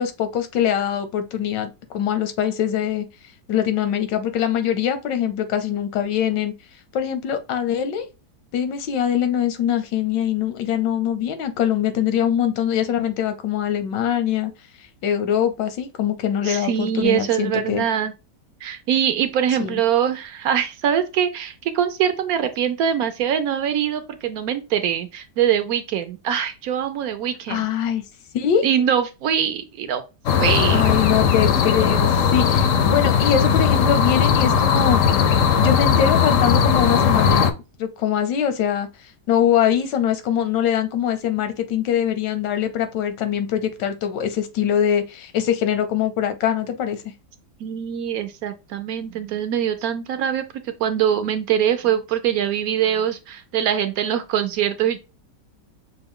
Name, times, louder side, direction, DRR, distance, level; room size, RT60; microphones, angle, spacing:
voice 1, 0.0-3.0 3.5-6.5 6.9-8.1 8.5-14.5 15.0-17.8 19.6-19.8 27.5-28.0 28.3-28.7 30.7-35.0 35.6-38.9 39.3-47.0, left 9 dB, 85° left, 1.4 m, -23 dB
voice 2, 16.4-18.1 18.6-27.6 28.6-30.0 30.4-30.9 47.6-50.4 50.8-55.0, right 9 dB, 70° right, 0.9 m, -23 dB
sound 1, 30.3-37.5, left 7 dB, 65° left, 0.8 m, -18 dB
6.0 x 2.2 x 3.6 m
omnidirectional pair, 1.9 m